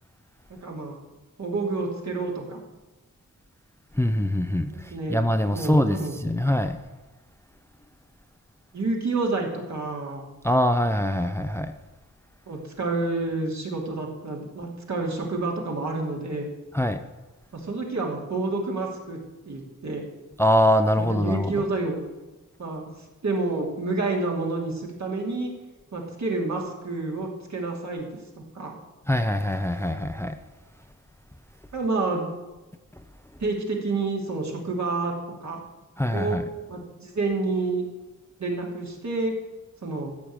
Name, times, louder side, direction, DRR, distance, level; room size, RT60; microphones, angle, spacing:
voice 1, 0.5-1.0 1.4-2.6 4.7-5.2 5.5-6.1 8.7-10.2 12.5-16.5 17.5-19.2 19.4-20.0 21.0-22.0 22.6-22.9 23.2-25.5 25.9-28.1 28.5-28.7 31.7-32.3 33.4-35.1 35.4-35.6 36.1-36.4 36.7-37.8 38.4-39.3 39.8-40.2, right 3 dB, 60° right, -1 dB, 3.0 m, -29 dB
voice 2, 3.9-6.8 10.4-11.7 16.7-17.0 20.4-21.6 29.1-30.4 36.0-36.4, left 1 dB, 10° left, 8 dB, 0.6 m, -23 dB
14.0 x 6.4 x 8.9 m, 1.1 s
wide cardioid pair, 125°, 32 cm